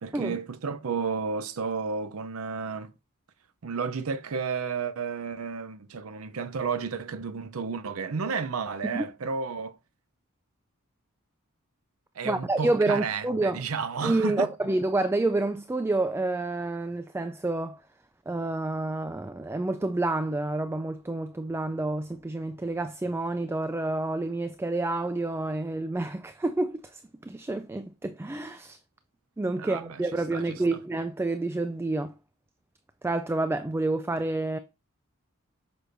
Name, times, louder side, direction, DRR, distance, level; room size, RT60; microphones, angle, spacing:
voice 1, 0.0-2.9 3.6-9.8 12.2-14.5 29.6-30.0 30.3-30.6, right 5 dB, 80° right, 0.6 m, -32 dB
voice 2, 12.2-13.6 14.0-17.8 18.3-28.8 29.4-32.1 33.0-34.6, right 2 dB, 10° right, 0.3 m, -29 dB
8.1 x 6.1 x 2.6 m
head